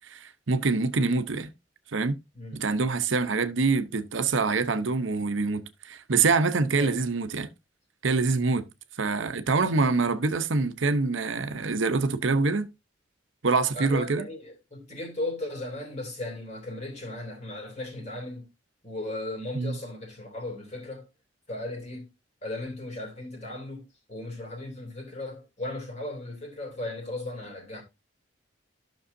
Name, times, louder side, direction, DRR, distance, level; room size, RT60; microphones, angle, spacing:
voice 1, 0.1-1.5 1.9-2.1 2.5-7.5 8.0-8.6 9.0-12.7 13.4-14.3 19.5-19.8, right 4 dB, 75° right, 0.8 m, -25 dB
voice 2, 13.7-18.5 18.8-21.1 21.5-22.1 22.4-27.8, left 2 dB, 35° left, 2.8 m, -36 dB
12.5 x 6.2 x 2.7 m
head